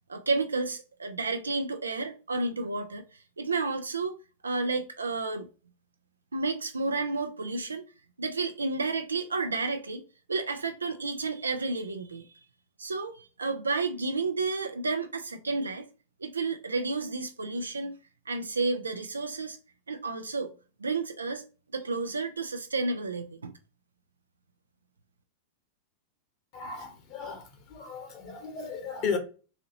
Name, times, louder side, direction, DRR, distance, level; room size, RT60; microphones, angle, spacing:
voice 1, 0.1-3.0 3.4-4.1 4.4-5.5 6.3-7.8 8.2-10.0 10.3-12.3 12.8-15.9 16.2-17.9 18.3-19.6 19.9-20.5 20.8-21.5 21.7-23.5, right 3 dB, 80° right, 0.4 m, -31 dB
voice 2, 26.5-29.2, left 5 dB, 45° left, 1.3 m, -35 dB
4.0 x 2.7 x 2.8 m
figure-of-eight pair, 95°, 0 cm